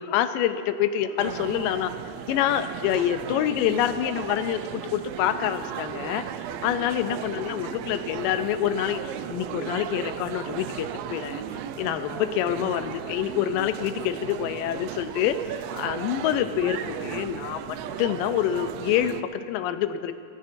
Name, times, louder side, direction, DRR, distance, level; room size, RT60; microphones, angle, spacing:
voice 1, 0.0-1.9 2.3-6.3 6.6-11.4 11.8-15.4 15.7-20.1, left 11 dB, 85° left, 10 dB, 2.2 m, -26 dB
sound 1, 1.2-19.2, right 10 dB, 85° right, 2.3 m, -36 dB
22.0 x 14.0 x 2.6 m, 2.5 s
omnidirectional pair, 4.0 m